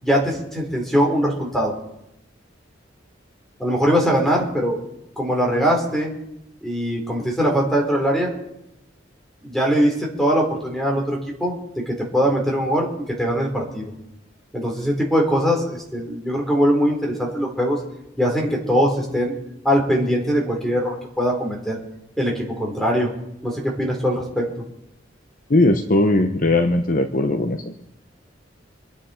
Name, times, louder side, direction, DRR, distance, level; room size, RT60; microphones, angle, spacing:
voice 1, 0.0-1.7 3.6-4.8 5.2-6.1 6.6-8.3 9.4-12.9 13.2-13.9 14.5-17.8 18.2-19.3 19.6-21.8 22.2-23.1 23.4-24.4, equal, ahead, 0 dB, 3.9 m, -21 dB
voice 2, 25.5-27.8, left 2 dB, 45° left, 7 dB, 0.9 m, -19 dB
26.0 x 9.5 x 4.4 m, 0.84 s
head